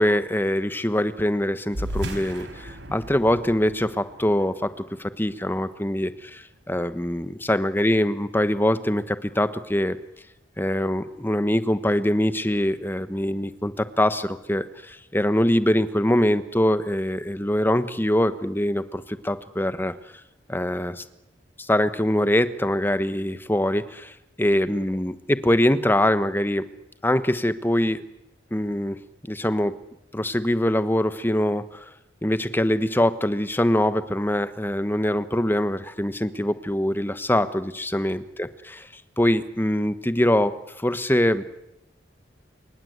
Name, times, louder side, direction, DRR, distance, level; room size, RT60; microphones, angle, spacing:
voice 1, 0.0-10.0 10.6-19.9 20.5-21.0 21.6-26.6 27.0-28.0 28.5-29.0 29.3-29.7 30.1-31.8 32.2-38.5 38.8-41.4, left 1 dB, 10° left, 12 dB, 1.2 m, -23 dB
sound 1, 1.7-6.6, right 1 dB, 75° right, 4.4 m, -36 dB
27.5 x 24.5 x 8.1 m, 0.87 s
head